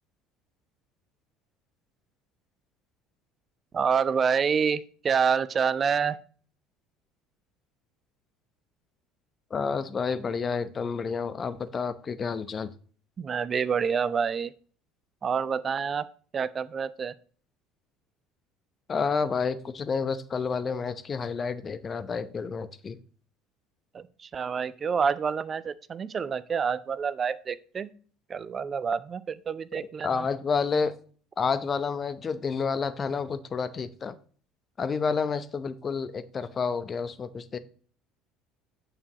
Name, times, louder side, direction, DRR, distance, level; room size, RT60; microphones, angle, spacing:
voice 1, 3.7-6.2 13.2-14.5 15.2-16.1 16.3-17.1 23.9-27.9 28.3-30.3, right 6 dB, 35° right, 16 dB, 0.5 m, -27 dB
voice 2, 9.5-12.7 18.9-23.0 30.0-31.0 31.4-34.2 34.8-37.6, left 5 dB, 35° left, 13 dB, 0.8 m, -29 dB
8.5 x 6.8 x 3.0 m, 0.43 s
figure-of-eight pair, 60°, 0 cm